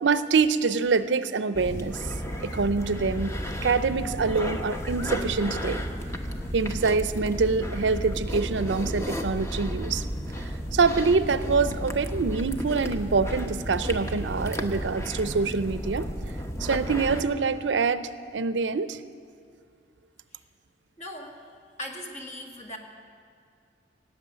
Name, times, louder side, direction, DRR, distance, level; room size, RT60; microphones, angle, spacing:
voice 1, 0.0-2.0 2.4-3.4 3.6-5.8 6.5-10.0 10.7-16.1 16.6-19.0, right 4 dB, 90° right, 13 dB, 0.6 m, -25 dB
sound 1, 1.5-17.2, equal, 15° left, 0.9 m, -33 dB
voice 2, 21.0-21.5 21.8-22.8, left 1 dB, 40° left, 1 dB, 1.9 m, -39 dB
17.5 x 8.3 x 9.5 m, 2.3 s
head